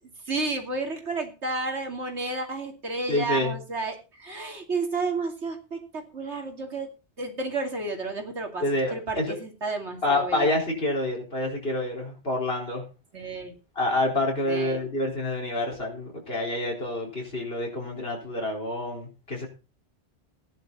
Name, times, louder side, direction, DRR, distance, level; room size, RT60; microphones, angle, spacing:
voice 1, 0.3-5.8 6.1-6.9 7.2-8.6 8.9-10.5 13.1-13.5 14.5-14.8, right 3 dB, 85° right, 4 dB, 3.0 m, -31 dB
voice 2, 3.1-3.5 8.6-9.4 10.0-12.8 13.8-19.5, left 1 dB, 60° left, -1 dB, 4.6 m, -27 dB
15.5 x 10.5 x 4.1 m, 0.31 s
omnidirectional pair, 1.1 m